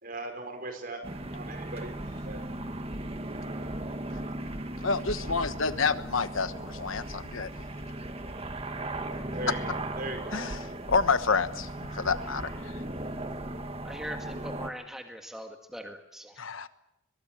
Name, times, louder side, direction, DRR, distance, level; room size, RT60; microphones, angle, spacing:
voice 1, 0.0-1.0 1.3-1.9 2.2-2.4 9.3-10.4, right 2 dB, 45° right, 6 dB, 5.0 m, -38 dB
sound 1, 1.0-14.7, right 1 dB, 30° right, 1.7 m, -37 dB
voice 2, 4.8-7.5 9.5-9.6 10.3-12.7 16.4-16.7, left 5 dB, 80° left, 12 dB, 1.2 m, -29 dB
voice 3, 13.8-16.4, equal, ahead, 4 dB, 1.8 m, -41 dB
22.5 x 22.0 x 7.7 m, 0.87 s
head